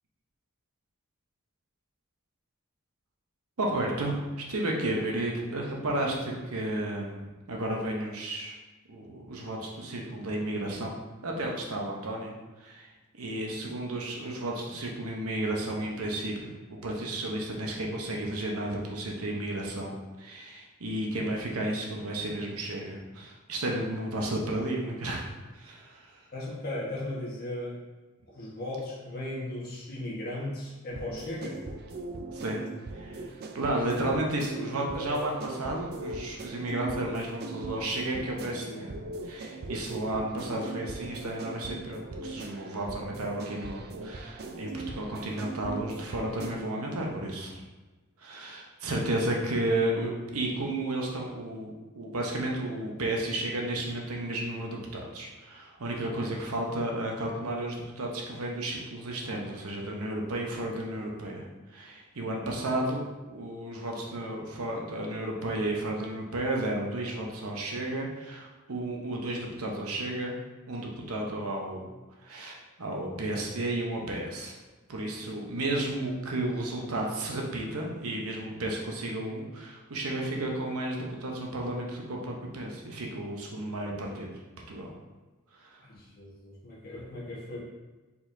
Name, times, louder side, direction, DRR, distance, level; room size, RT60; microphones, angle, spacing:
voice 1, 3.6-7.2 7.5-8.5 8.9-10.9 11.2-12.9 13.2-16.6 16.8-25.3 25.5-26.2 32.3-32.6 32.9-33.3 33.5-38.9 39.2-47.6 48.2-61.5 61.7-70.4 70.7-71.9 72.2-74.6 74.9-84.3 84.7-84.9 85.5-85.8, right 1 dB, 85° right, 0 dB, 0.9 m, -33 dB
voice 2, 26.3-27.8 28.3-31.7 85.8-87.7, left 1 dB, 45° left, -6 dB, 1.4 m, -37 dB
sound 1, 30.9-46.9, right 2 dB, 45° right, 0.4 m, -40 dB
4.6 x 4.1 x 2.7 m, 1.2 s
head